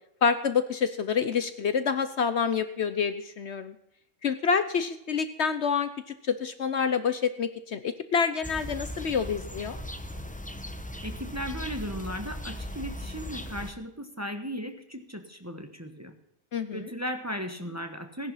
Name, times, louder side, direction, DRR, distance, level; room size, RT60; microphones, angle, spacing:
voice 1, 0.2-3.7 4.2-5.9 6.2-9.8 16.5-16.9, left 6 dB, 60° left, 11 dB, 1.0 m, -27 dB
sound 1, 8.4-13.7, left 1 dB, 5° left, 0.7 m, -38 dB
voice 2, 11.0-16.1 16.7-18.3, equal, 10° right, 5 dB, 1.2 m, -36 dB
17.0 x 10.5 x 5.6 m, 0.81 s
omnidirectional pair, 1.4 m